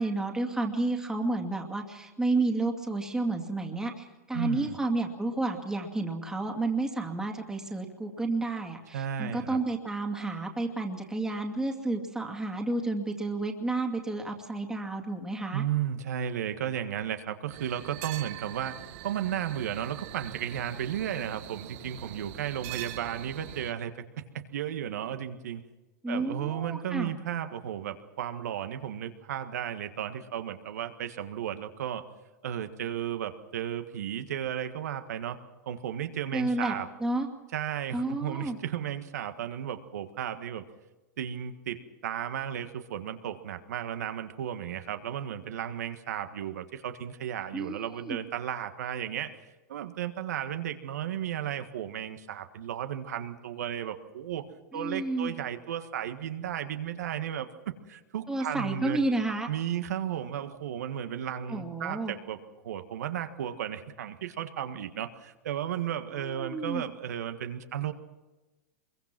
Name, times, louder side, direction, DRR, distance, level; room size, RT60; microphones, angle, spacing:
voice 1, 0.0-15.6 26.0-27.1 36.3-36.7 37.0-37.3 37.9-38.6 47.5-48.2 54.7-55.3 58.3-59.5 61.5-62.1 66.2-66.8, right 2 dB, 5° right, 1 dB, 2.4 m, -31 dB
voice 2, 4.3-4.8 8.9-9.6 15.5-18.7 19.0-25.6 26.1-32.1 32.4-35.4 35.6-36.9 37.5-40.7 41.2-49.4 49.7-54.5 54.7-59.0 59.5-67.9, right 10 dB, 75° right, 8 dB, 1.7 m, -34 dB
sound 1, 17.5-23.7, right 15 dB, 55° right, 1.2 m, -43 dB
24.0 x 22.5 x 6.1 m, 1.1 s
hypercardioid pair, 120°, 9 cm